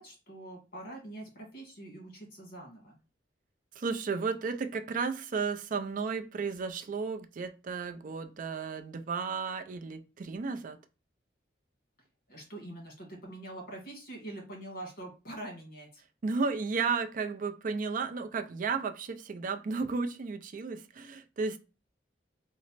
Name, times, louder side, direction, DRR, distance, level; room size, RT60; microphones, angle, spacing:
voice 1, 0.0-3.0 12.3-16.0, right 1 dB, 55° left, 1.3 m, -44 dB
voice 2, 3.7-10.8 16.2-21.6, right 4 dB, 45° right, 0.4 m, -33 dB
3.1 x 2.0 x 3.9 m
head